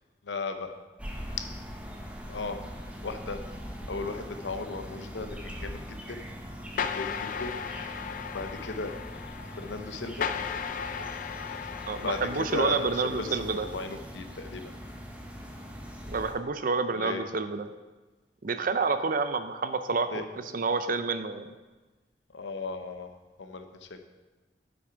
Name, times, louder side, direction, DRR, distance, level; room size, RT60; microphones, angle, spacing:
voice 1, 0.2-0.8 1.4-1.5 2.3-2.6 3.0-3.4 3.9-6.3 6.8-7.6 8.3-9.0 9.5-10.3 12.0-14.8 16.9-17.2 20.1-20.2 22.3-23.1 23.4-24.0, left 4 dB, 85° left, 7 dB, 0.8 m, -36 dB
sound 1, 1.0-16.3, equal, 5° right, 0.9 m, -42 dB
sound 2, 6.8-13.6, left 7 dB, 50° left, 0.4 m, -36 dB
voice 2, 11.9-13.7 16.1-17.7 18.4-20.2 20.5-21.5, right 4 dB, 50° right, 10 dB, 0.5 m, -28 dB
8.1 x 6.0 x 5.0 m, 1.2 s
head